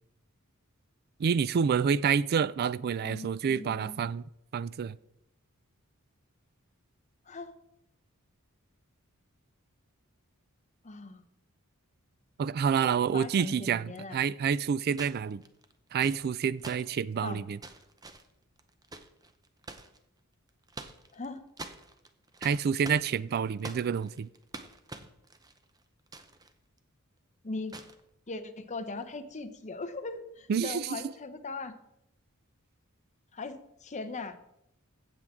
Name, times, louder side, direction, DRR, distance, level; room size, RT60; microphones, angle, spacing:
voice 1, 1.2-4.2 4.5-5.0 12.4-15.4 15.9-17.6 22.4-24.3 30.5-31.0, right 7 dB, 45° right, 0.3 m, -28 dB
voice 2, 3.0-4.0 7.3-7.5 10.8-11.2 13.1-14.2 17.2-17.4 21.1-21.4 27.4-27.7 28.3-31.7 33.3-34.4, left 3 dB, 35° left, 0.8 m, -39 dB
sound 1, 13.1-13.2 14.9-20.0 20.5-21.3 21.6-26.5 26.8-26.9 27.7-28.0 28.9-29.1, right 2 dB, 20° right, 0.7 m, -46 dB
16.0 x 7.4 x 3.6 m
head